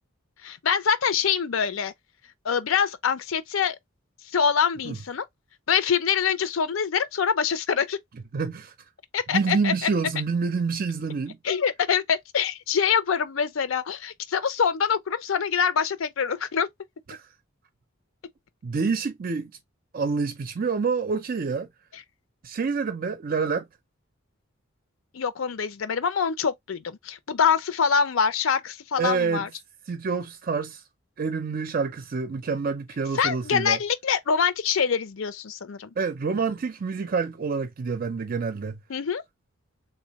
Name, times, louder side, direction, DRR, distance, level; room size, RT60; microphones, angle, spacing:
voice 1, 0.4-1.9 2.4-3.8 4.3-5.3 5.7-8.0 9.1-9.7 11.4-16.7 21.9-22.0 25.1-29.5 33.1-35.9 38.9-39.2, left 7 dB, 80° left, 0.5 m, -25 dB
voice 2, 8.3-8.7 9.3-11.4 17.1-17.3 18.6-19.5 19.9-21.7 22.4-23.7 29.0-29.5 29.9-30.8 31.2-33.8 36.0-38.8, right 5 dB, 45° right, 0.5 m, -27 dB
3.5 x 2.2 x 4.0 m
head